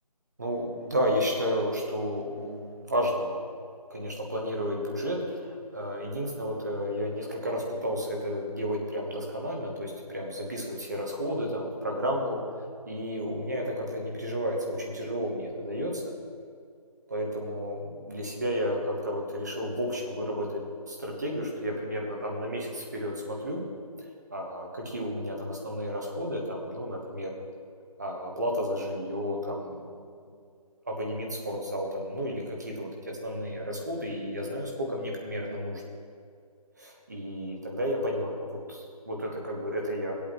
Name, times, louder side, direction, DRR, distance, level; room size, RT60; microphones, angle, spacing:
voice 1, 0.4-3.4 3.9-12.4 12.9-16.1 17.1-20.6 20.9-23.6 24.3-27.3 28.0-30.0 30.9-35.8 36.8-40.1, equal, 25° right, -1 dB, 1.1 m, -32 dB
16.5 x 8.2 x 3.0 m, 2.2 s
figure-of-eight pair, 180°, 20 cm